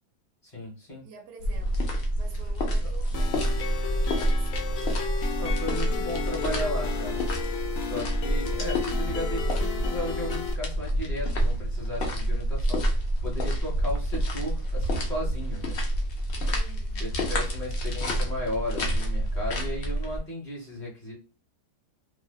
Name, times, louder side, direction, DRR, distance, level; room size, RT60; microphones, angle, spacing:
voice 1, 0.4-1.1 5.4-7.2 7.8-15.8 17.0-21.2, left 1 dB, 30° left, 1.1 m, -35 dB
voice 2, 1.0-4.8 16.4-17.1, right 5 dB, 60° right, 0.9 m, -49 dB
sound 1, 1.4-20.2, equal, 90° left, 0.5 m, -28 dB
sound 2, 3.1-10.5, left 7 dB, 70° left, 0.8 m, -34 dB
2.7 x 2.2 x 2.2 m
omnidirectional pair, 1.7 m